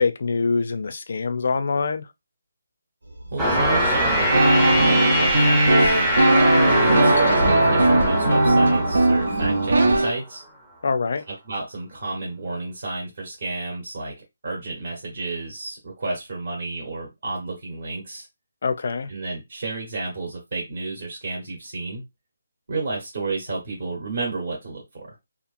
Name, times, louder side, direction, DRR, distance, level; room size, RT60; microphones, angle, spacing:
voice 1, 0.0-2.1 10.8-11.2 18.6-19.1, left 4 dB, 50° left, 0.3 m, -24 dB
sound 1, 3.0-9.9, right 1 dB, 90° right, 1.3 m, -33 dB
voice 2, 3.3-6.0 6.3-10.4 11.5-14.1 14.4-18.3 19.1-22.0 22.7-25.1, right 3 dB, 45° right, 1.0 m, -31 dB
sound 2, 3.4-10.0, equal, 5° right, 0.5 m, -23 dB
sound 3, 4.3-10.1, right 2 dB, 75° right, 0.8 m, -18 dB
2.8 x 2.4 x 2.5 m
hypercardioid pair, 175°, 0 cm